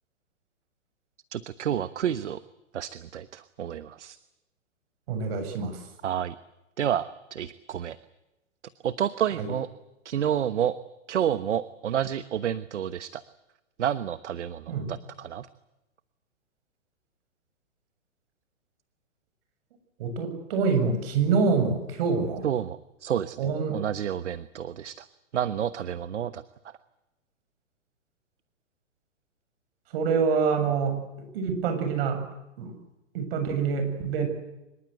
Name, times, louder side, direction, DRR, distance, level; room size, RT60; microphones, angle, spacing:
voice 1, 1.3-2.4 2.7-4.2 6.0-6.3 6.8-8.0 8.8-9.7 10.0-10.8 11.1-13.2 13.8-15.5 22.4-23.4 23.7-25.0 25.3-26.7, right 9 dB, 65° right, 14 dB, 1.2 m, -29 dB
voice 2, 5.1-5.8 9.4-9.5 14.7-14.9 20.0-22.4 23.4-23.8 29.9-31.0 31.3-32.2 32.6-32.7 33.1-34.3, right 5 dB, 50° right, 7 dB, 7.6 m, -26 dB
25.5 x 22.0 x 8.0 m, 0.97 s
hypercardioid pair, 120°, 37 cm